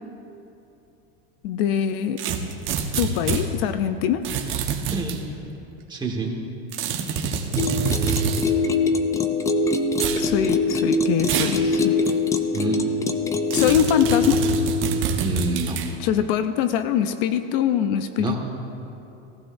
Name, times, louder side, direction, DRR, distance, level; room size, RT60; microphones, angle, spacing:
voice 1, 1.4-2.2 3.0-4.3 10.2-12.0 13.5-14.5 16.0-18.4, left 9 dB, 60° left, 10 dB, 0.6 m, -23 dB
sound 1, 2.2-3.5 4.2-5.2 6.7-8.5 9.9-10.3 11.2-11.6 12.1-12.2 13.5-15.9, right 6 dB, 35° right, 1.2 m, -26 dB
voice 2, 5.9-6.4 12.5-12.8 15.2-15.8 18.2-18.4, right 4 dB, 15° right, -1 dB, 1.7 m, -27 dB
sound 2, 7.6-14.8, left 3 dB, 10° left, 0.4 m, -23 dB
18.5 x 15.0 x 2.6 m, 2.8 s
supercardioid pair, 140°, 33 cm